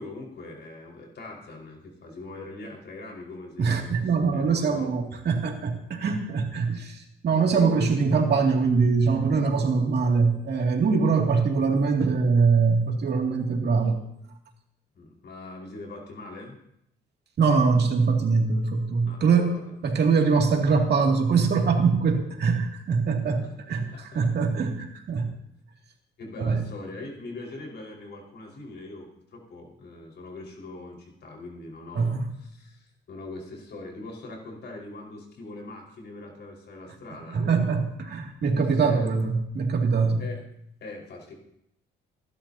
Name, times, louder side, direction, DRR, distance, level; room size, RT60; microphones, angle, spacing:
voice 1, 0.0-4.9 14.9-16.6 19.1-20.1 23.4-23.5 23.9-24.3 26.2-37.8 38.5-39.1 40.2-40.4 40.8-41.4, left 2 dB, 60° left, -1 dB, 4.8 m, -42 dB
voice 2, 3.6-14.0 17.4-19.5 19.8-23.4 23.7-25.3 26.4-26.6 32.0-32.2 37.3-40.2, right 5 dB, 55° right, 2 dB, 2.4 m, -23 dB
28.5 x 12.0 x 2.8 m, 0.76 s
cardioid pair, 90°, 20 cm